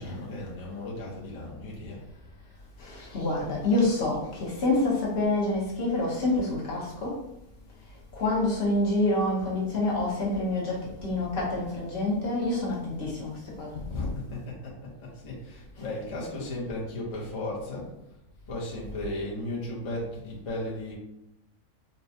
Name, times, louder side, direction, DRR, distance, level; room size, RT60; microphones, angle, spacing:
voice 1, 0.0-2.0 13.7-17.9 18.5-20.9, left 1 dB, 30° left, -5 dB, 0.7 m, -35 dB
voice 2, 2.8-7.2 8.1-13.9 15.8-15.9, left 2 dB, 50° left, -4 dB, 1.1 m, -27 dB
4.2 x 2.2 x 2.7 m, 0.84 s
omnidirectional pair, 1.5 m